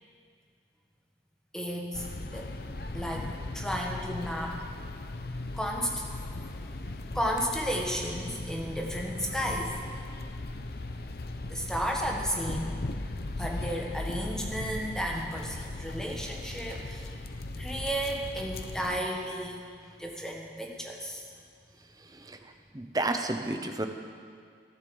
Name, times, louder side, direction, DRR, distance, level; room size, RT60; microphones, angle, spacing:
voice 1, 1.5-2.1 2.3-2.5 2.9-4.6 5.5-6.1 6.6-6.7 7.1-9.8 11.5-12.8 13.3-17.3 17.5-19.6 20.0-21.3, equal, 5° left, -1 dB, 1.5 m, -33 dB
sound 1, 1.9-19.0, left 2 dB, 60° left, 0.8 m, -38 dB
voice 2, 22.1-23.9, right 2 dB, 20° right, 5 dB, 0.9 m, -32 dB
14.0 x 11.0 x 7.1 m, 2.1 s
head